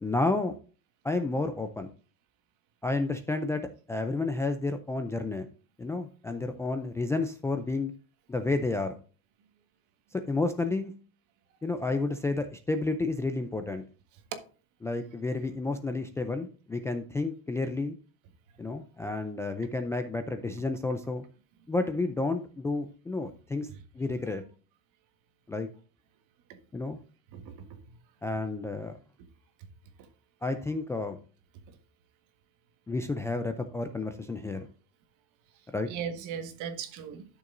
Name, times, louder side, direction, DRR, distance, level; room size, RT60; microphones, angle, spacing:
voice 1, 0.0-0.5 1.0-1.9 2.8-3.6 3.9-5.5 5.8-7.9 8.3-9.0 10.1-10.9 11.6-13.8 14.8-18.0 18.6-21.2 21.7-23.7 23.9-24.4 25.5-25.7 26.7-27.0 28.2-29.0 30.4-31.2 32.9-34.7 35.7-35.9, left 3 dB, 10° left, 0.3 m, -31 dB
voice 2, 27.3-28.0 35.9-37.3, right 7 dB, 60° right, 1.6 m, -38 dB
12.0 x 6.6 x 2.6 m
cardioid pair, 165°, 34 cm